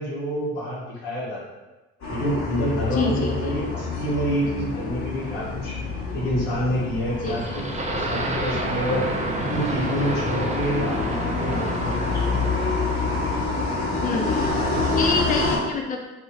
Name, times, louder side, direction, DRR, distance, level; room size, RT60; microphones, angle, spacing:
voice 1, 0.0-1.5 2.1-5.8 6.1-9.1 9.4-12.3, equal, 70° left, -6 dB, 1.2 m, -27 dB
sound 1, 2.0-15.6, left 3 dB, 55° left, 1.5 m, -27 dB
voice 2, 2.9-3.6 7.2-7.6 14.0-14.5 15.0-16.0, left 4 dB, 25° left, 2 dB, 0.5 m, -27 dB
sound 2, 7.2-13.6, right 2 dB, 20° right, 0.5 m, -30 dB
2.8 x 2.7 x 3.6 m, 1.1 s
hypercardioid pair, 40°, 34 cm